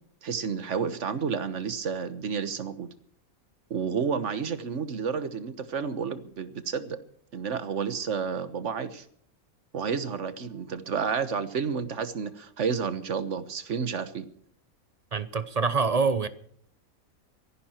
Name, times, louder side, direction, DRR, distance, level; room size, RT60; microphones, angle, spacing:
voice 1, 0.2-2.9 3.7-7.0 7.3-9.0 9.7-14.3, right 6 dB, 55° right, 1.5 m, -30 dB
voice 2, 15.1-16.3, right 4 dB, 30° right, 0.9 m, -25 dB
24.5 x 11.5 x 4.5 m
omnidirectional pair, 1.5 m